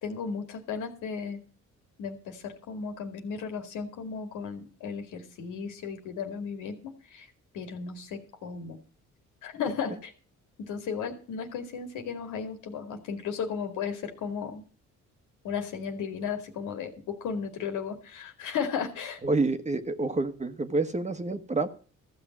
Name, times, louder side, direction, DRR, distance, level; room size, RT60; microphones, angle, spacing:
voice 1, 0.0-1.4 2.0-7.3 7.5-8.8 9.4-10.1 10.6-14.6 15.4-19.2, left 6 dB, 90° left, 5 dB, 2.3 m, -35 dB
voice 2, 19.2-21.7, right 3 dB, 25° right, 9 dB, 1.3 m, -28 dB
14.5 x 6.5 x 7.4 m, 0.39 s
cardioid pair, 90°, 30 cm